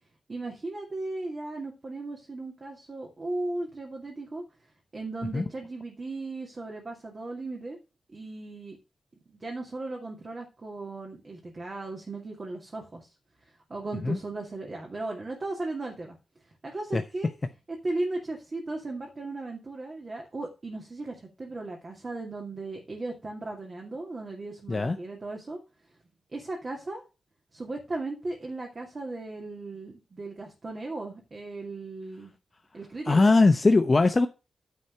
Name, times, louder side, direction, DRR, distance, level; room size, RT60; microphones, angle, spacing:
voice 1, 0.3-4.4 4.9-7.8 8.1-8.8 9.3-13.1 13.7-16.2 16.6-17.3 17.7-25.6 26.3-27.0 27.5-32.3 32.7-33.3, right 2 dB, 35° right, 2.3 m, -36 dB
voice 2, 33.1-34.3, left 3 dB, 30° left, 0.7 m, -20 dB
9.9 x 4.3 x 6.7 m
wide cardioid pair, 95°, 0 cm